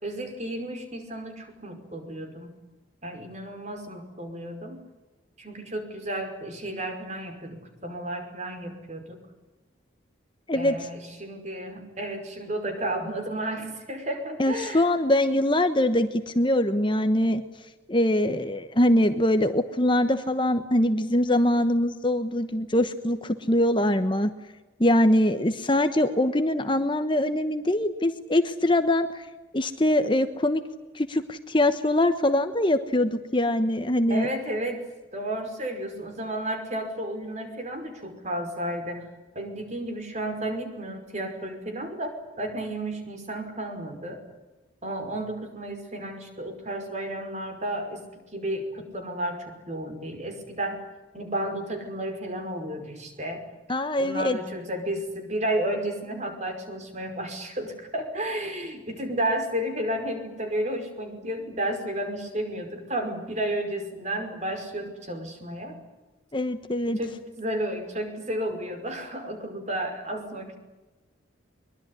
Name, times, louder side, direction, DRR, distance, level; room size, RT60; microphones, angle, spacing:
voice 1, 0.0-2.5 3.0-4.8 5.4-9.2 10.5-14.9 34.1-34.8 35.1-39.0 39.4-44.2 44.8-48.0 48.3-50.8 51.1-53.4 54.0-65.8 67.0-70.5, right 1 dB, 35° right, 6 dB, 5.4 m, -32 dB
voice 2, 10.5-10.9 14.4-17.4 17.9-24.3 24.8-29.3 29.5-30.6 30.9-34.3 53.7-54.4 66.3-67.0, left 1 dB, 25° left, 9 dB, 1.1 m, -23 dB
23.5 x 22.5 x 9.9 m, 1.1 s
head